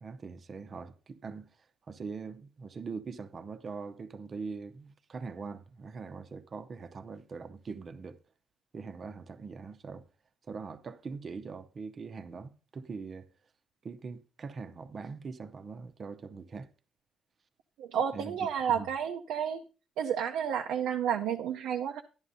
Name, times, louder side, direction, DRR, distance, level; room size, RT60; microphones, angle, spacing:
voice 1, 0.0-1.5 1.9-8.2 8.7-10.0 10.5-13.3 13.8-16.7 18.1-18.4 18.7-18.9, right 4 dB, 45° right, 0.7 m, -42 dB
voice 2, 17.8-19.6 20.0-22.0, right 8 dB, 90° right, 0.5 m, -31 dB
11.5 x 10.5 x 2.7 m
cardioid pair, 90°, 0 cm